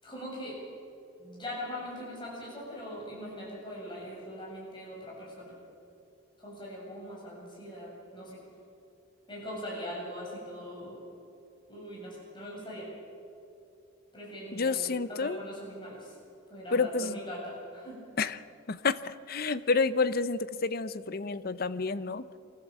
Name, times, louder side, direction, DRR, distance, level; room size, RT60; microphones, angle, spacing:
voice 1, 0.0-0.6 1.2-5.5 6.4-8.4 9.3-11.0 11.7-12.9 14.1-16.2 16.5-18.0 19.6-19.7, equal, 25° left, -5 dB, 7.1 m, -41 dB
voice 2, 14.5-15.4 16.7-17.2 18.2-18.4 18.7-22.2, left 4 dB, 50° left, 14 dB, 0.7 m, -29 dB
24.5 x 15.0 x 7.6 m, 2.6 s
head